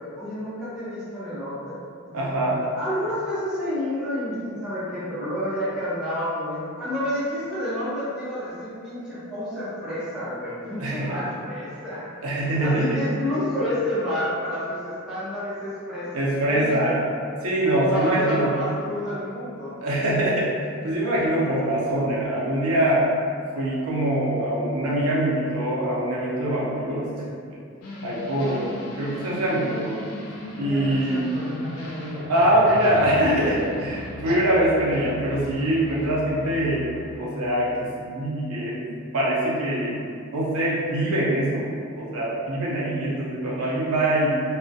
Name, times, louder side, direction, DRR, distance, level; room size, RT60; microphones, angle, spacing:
voice 1, 0.0-1.8 2.0-2.4 2.8-12.1 12.6-16.9 17.7-19.7 30.6-32.3, left 1 dB, 5° right, -12 dB, 0.5 m, -30 dB
voice 2, 2.1-2.7 10.8-11.2 12.2-13.0 16.1-17.0 17.4-18.6 19.8-23.1 23.5-27.1 28.0-30.0 30.6-31.3 32.3-36.9 37.2-38.8 39.1-40.0 40.3-44.4, right 1 dB, 80° right, -6 dB, 0.6 m, -23 dB
sound 1, 27.8-37.2, left 1 dB, 85° left, 0.4 m, -37 dB
2.3 x 2.0 x 2.6 m, 2.3 s
head